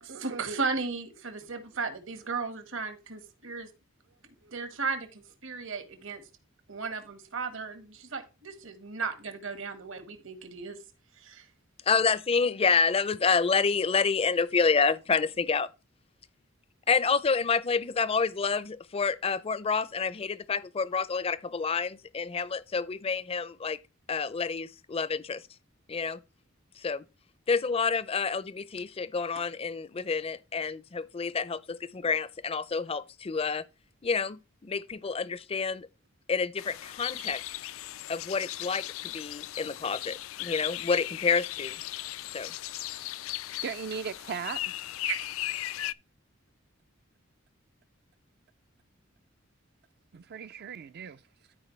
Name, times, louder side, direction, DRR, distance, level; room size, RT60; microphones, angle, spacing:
voice 1, 0.0-3.7 4.4-6.2 6.7-10.8 11.2-11.4 45.0-45.2, right 4 dB, 75° right, 1.7 m, -35 dB
voice 2, 11.9-15.7 16.9-23.8 24.1-25.4 25.9-26.2 26.8-27.0 27.5-33.6 34.0-35.9 36.3-37.4 38.1-41.8 42.3-42.5, left 5 dB, 30° left, 0.4 m, -28 dB
sound 1, 36.6-45.9, left 15 dB, 90° left, 0.4 m, -37 dB
voice 3, 43.6-44.7 50.1-51.2, right 6 dB, 50° right, 0.4 m, -37 dB
13.0 x 4.7 x 3.2 m
head